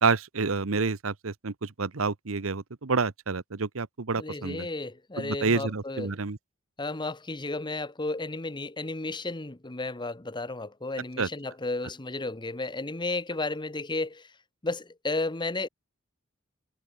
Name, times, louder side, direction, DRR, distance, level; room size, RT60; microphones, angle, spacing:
voice 1, 0.0-4.7 5.2-6.4 11.2-11.3, right 4 dB, 75° right, 1.0 m, -28 dB
voice 2, 4.2-6.1 6.8-14.3 14.6-15.7, left 2 dB, 20° left, 1.2 m, -33 dB
head